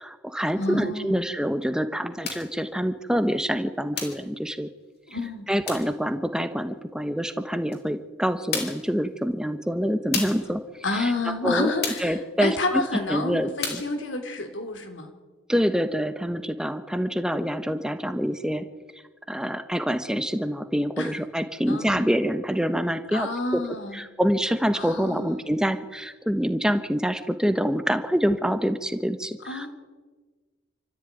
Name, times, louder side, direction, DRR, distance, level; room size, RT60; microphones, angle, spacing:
voice 1, 0.0-4.7 5.5-10.6 10.9-11.1 11.4-12.8 13.1-13.8 15.5-18.6 19.3-23.3 23.5-23.6 23.9-29.7, equal, 5° right, 9 dB, 1.2 m, -26 dB
voice 2, 0.6-1.2 5.1-5.5 10.8-15.1 21.0-21.1 21.7-22.1 23.1-24.0 24.7-25.4 29.5-29.7, left 2 dB, 70° left, 5 dB, 3.0 m, -29 dB
sound 1, 2.2-2.5 4.0-4.3 5.7-5.9 7.7-7.8 8.5-8.9 10.1-10.5 11.8-12.2 13.6-13.9, left 5 dB, 50° left, 4.5 m, -31 dB
27.5 x 14.5 x 9.4 m, 1.3 s
head